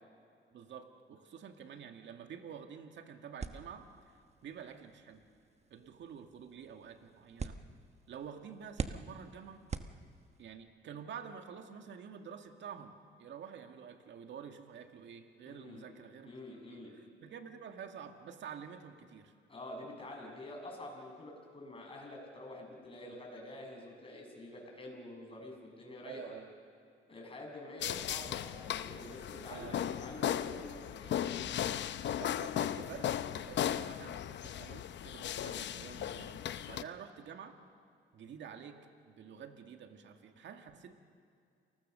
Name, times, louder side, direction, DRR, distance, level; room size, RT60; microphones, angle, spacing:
voice 1, 0.5-5.2 5.7-7.6 8.1-9.6 10.4-12.9 13.2-16.3 16.7-19.3 23.1-23.2 26.0-26.5 29.5-30.0 32.2-37.6 38.1-38.8 39.1-40.9, right 7 dB, 65° right, 5 dB, 2.0 m, -49 dB
sound 1, 3.4-10.5, right 4 dB, 35° right, 1.2 m, -46 dB
voice 2, 15.4-15.8 16.2-17.0 19.5-26.3 27.1-31.2, left 1 dB, 25° left, 1 dB, 7.0 m, -47 dB
sound 2, 27.8-36.8, left 10 dB, 65° left, 0.8 m, -37 dB
28.5 x 20.5 x 6.7 m, 2.3 s
cardioid pair, 90°, 20 cm